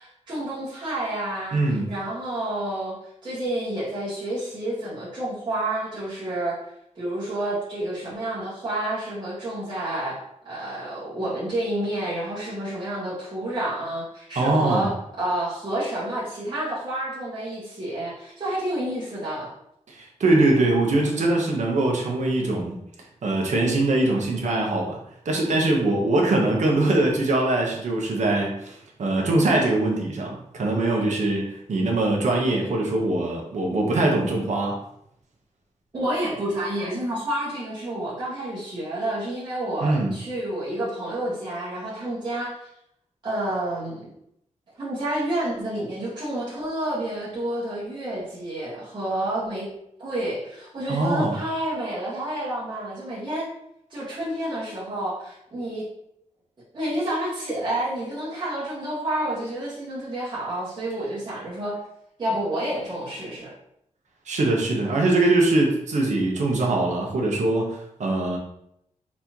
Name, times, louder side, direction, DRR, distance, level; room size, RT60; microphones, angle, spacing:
voice 1, 0.0-3.0 3.2-6.6 7.0-10.2 10.4-14.9 15.2-19.5 35.9-42.6 43.2-44.1 44.8-49.7 50.0-53.5 53.9-55.8 56.7-61.8 62.2-63.5, right 1 dB, 35° right, -10 dB, 1.8 m, -29 dB
voice 2, 1.5-1.9 14.3-14.9 19.9-22.8 23.2-25.0 25.2-34.8 39.8-40.1 50.9-51.3 64.3-68.4, right 2 dB, 70° right, 0 dB, 1.1 m, -22 dB
4.3 x 4.1 x 3.0 m, 0.76 s
wide cardioid pair, 155°, 13 cm